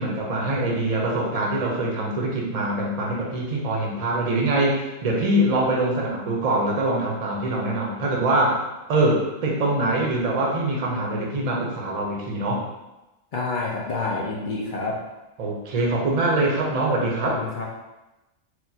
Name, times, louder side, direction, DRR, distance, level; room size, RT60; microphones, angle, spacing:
voice 1, 0.0-8.6 8.9-12.6 15.4-17.4, right 2 dB, 40° right, -2 dB, 0.6 m, -24 dB
voice 2, 13.3-15.0 17.2-17.6, left 3 dB, 55° left, -3 dB, 0.6 m, -28 dB
4.2 x 2.2 x 2.7 m, 1.0 s
omnidirectional pair, 1.2 m